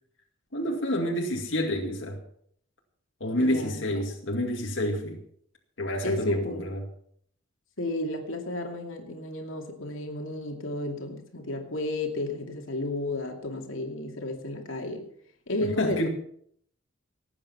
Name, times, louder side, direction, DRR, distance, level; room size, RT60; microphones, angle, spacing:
voice 1, 0.5-2.2 3.2-5.2 5.8-6.8 15.6-16.1, left 1 dB, 65° left, -1 dB, 2.3 m, -28 dB
voice 2, 3.4-3.9 6.0-6.7 7.8-15.0 15.5-16.1, left 2 dB, 80° left, 2 dB, 2.5 m, -32 dB
18.0 x 8.7 x 5.8 m, 0.65 s
head